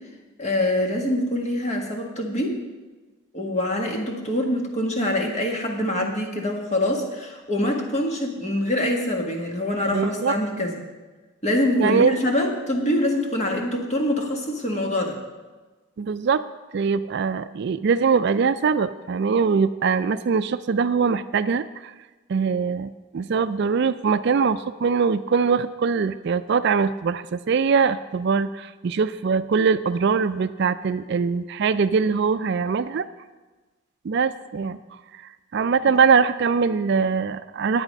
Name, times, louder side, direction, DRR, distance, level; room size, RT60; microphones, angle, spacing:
voice 1, 0.4-2.6 3.3-10.7 11.4-15.2 35.9-36.0, left 1 dB, 30° left, 1 dB, 1.6 m, -24 dB
voice 2, 9.9-10.4 11.8-12.2 16.0-16.4 16.7-21.9 22.3-33.1 34.0-34.8 35.5-37.8, right 5 dB, 55° right, 12 dB, 0.3 m, -22 dB
10.5 x 8.9 x 5.3 m, 1.3 s
head